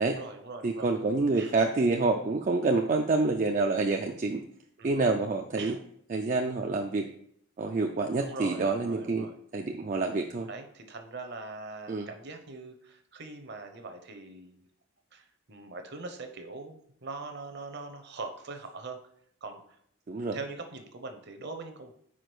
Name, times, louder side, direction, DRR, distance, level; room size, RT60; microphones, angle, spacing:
voice 1, 0.0-0.9 1.4-1.5 4.8-5.1 5.6-5.8 8.2-9.4 10.5-14.7 15.1-19.0 19.4-19.6 20.3-21.9, right 3 dB, 50° right, 6 dB, 0.8 m, -42 dB
voice 2, 0.6-4.4 4.8-5.8 6.1-7.1 7.6-9.3 9.5-10.5 11.9-12.1 20.1-20.4, right 3 dB, 35° right, 3 dB, 0.4 m, -27 dB
5.0 x 4.7 x 6.1 m, 0.68 s
head